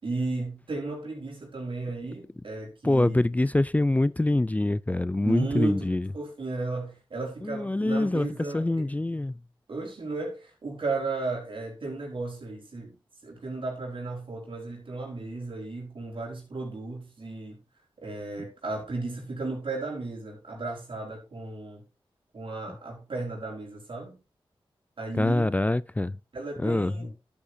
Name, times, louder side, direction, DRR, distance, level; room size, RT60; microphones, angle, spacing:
voice 1, 0.0-3.2 5.2-8.9 9.7-13.0 13.2-17.6 18.0-21.8 22.3-24.2 25.0-25.5 26.3-27.1, right 3 dB, 65° right, 4.5 m, -34 dB
voice 2, 2.8-6.1 7.4-9.4 25.2-26.2 26.6-27.1, left 2 dB, 15° left, 0.4 m, -25 dB
11.5 x 8.4 x 2.8 m
cardioid pair, 45°, 9 cm